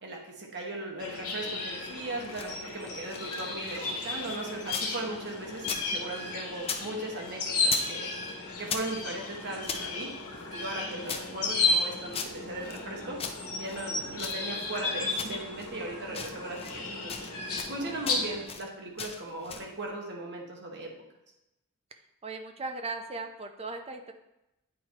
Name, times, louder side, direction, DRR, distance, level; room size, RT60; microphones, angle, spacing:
voice 1, 0.0-8.1 8.6-10.1 10.5-13.2 13.4-17.3 17.7-20.9, right 2 dB, 55° right, 0 dB, 1.3 m, -38 dB
sound 1, 1.0-18.4, left 3 dB, 75° left, 1.6 m, -34 dB
sound 2, 2.1-4.9 5.2-6.9 7.1-8.0 8.2-9.9 10.4-12.9 13.2-14.8 15.2-15.8 16.1-16.8 17.1-17.8 18.0-18.7 19.0-19.7, left 6 dB, 25° left, 0.5 m, -39 dB
voice 2, 22.2-24.1, right 3 dB, 25° right, 6 dB, 0.6 m, -37 dB
9.1 x 4.5 x 2.9 m, 0.90 s
head